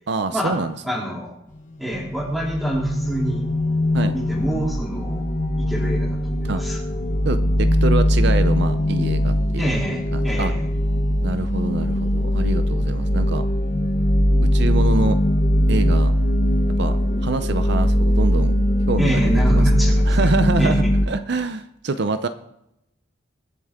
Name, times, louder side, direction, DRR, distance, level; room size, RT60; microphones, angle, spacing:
voice 1, 0.1-0.7 3.9-4.1 6.4-6.6 7.2-9.7 10.1-10.5 11.2-13.4 14.4-15.2 15.7-16.1 16.8-17.0 17.2-18.5 18.9-19.7 20.1-22.3, right 3 dB, 65° right, 10 dB, 0.7 m, -25 dB
voice 2, 0.8-1.4 1.8-3.5 4.1-5.2 5.6-6.8 9.5-10.7 19.0-20.3 20.6-20.9, right 1 dB, ahead, -3 dB, 3.3 m, -26 dB
sound 1, 1.6-21.1, equal, 45° left, 1.3 m, -20 dB
23.0 x 7.8 x 3.7 m, 0.82 s
head